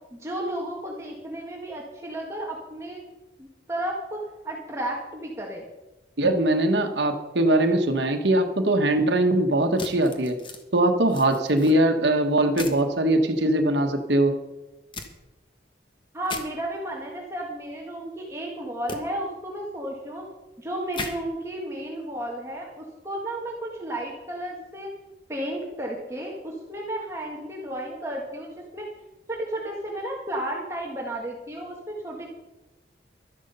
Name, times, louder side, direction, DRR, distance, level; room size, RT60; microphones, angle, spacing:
voice 1, 0.1-3.0 3.4-5.6 16.1-20.2 20.6-24.9 25.3-28.9 29.3-32.3, right 1 dB, 15° right, -2 dB, 1.5 m, -33 dB
voice 2, 6.2-10.4 10.7-14.3, right 1 dB, 75° right, 4 dB, 1.3 m, -21 dB
sound 1, 9.8-10.6 11.1-11.7 12.6-12.8 14.9-15.1 16.2-16.4 18.9-19.0 20.9-21.1, left 3 dB, 25° left, 1.2 m, -36 dB
13.0 x 11.0 x 5.5 m, 1.1 s
head